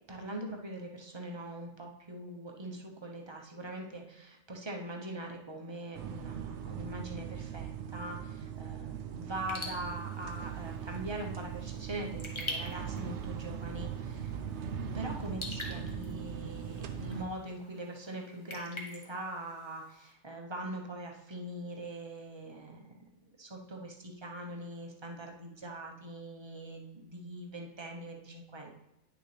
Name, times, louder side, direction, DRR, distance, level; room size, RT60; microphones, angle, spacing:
voice 1, 0.1-13.9 14.9-23.0 23.4-28.7, right 1 dB, 25° right, 1 dB, 0.8 m, -42 dB
sound 1, 5.9-17.3, right 8 dB, 65° right, 0.9 m, -40 dB
Raindrop / Drip, 9.4-20.1, left 1 dB, 20° left, 1.1 m, -46 dB
10.0 x 6.5 x 3.3 m, 0.86 s
omnidirectional pair, 1.5 m